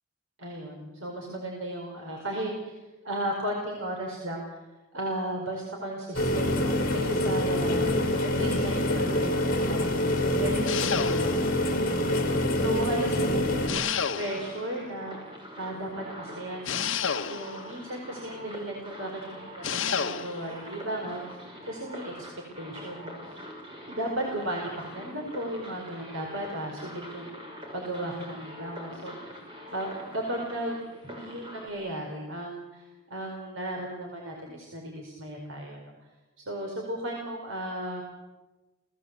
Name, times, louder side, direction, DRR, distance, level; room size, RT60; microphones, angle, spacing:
voice 1, 0.4-2.8 3.0-4.6 4.9-10.1 10.4-15.2 15.6-17.0 17.3-22.3 22.6-23.4 23.9-27.3 27.7-29.4 29.7-36.1 36.4-38.0, right 1 dB, 70° right, 0 dB, 4.8 m, -35 dB
sound 1, 6.1-13.7, left 1 dB, 45° left, 4.4 m, -26 dB
sound 2, 10.7-11.6 13.7-14.6 16.6-17.7 19.6-20.4, left 7 dB, 70° left, 1.1 m, -30 dB
sound 3, 14.1-31.7, equal, 25° right, 6.1 m, -44 dB
29.5 x 19.5 x 8.3 m, 1.2 s
head